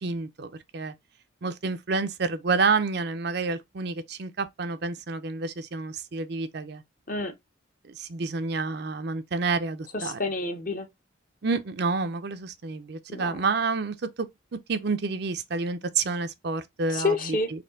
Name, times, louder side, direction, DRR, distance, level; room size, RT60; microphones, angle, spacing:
voice 1, 0.0-0.9 1.4-6.8 7.9-10.2 11.4-17.1, right 4 dB, 55° right, 0.5 m, -29 dB
voice 2, 9.9-10.9 13.1-13.4 16.9-17.5, left 3 dB, 45° left, 0.9 m, -28 dB
4.3 x 2.8 x 3.8 m
head